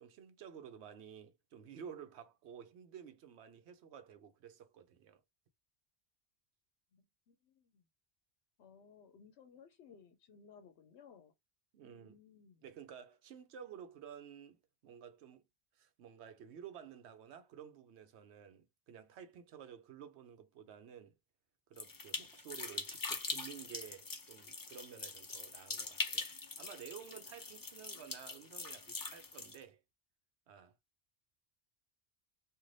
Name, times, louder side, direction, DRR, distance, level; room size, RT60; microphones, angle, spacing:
voice 1, 0.0-5.2 11.7-12.2 12.6-15.4 15.8-21.2 21.7-26.3 26.6-29.8 30.5-30.7, right 8 dB, 80° right, 0.9 m, -52 dB
voice 2, 6.9-7.8 8.6-11.3 11.8-12.7, left 6 dB, 80° left, 0.8 m, -60 dB
sound 1, 21.8-29.6, left 3 dB, 30° left, 0.3 m, -43 dB
2.6 x 2.5 x 3.1 m
omnidirectional pair, 1.1 m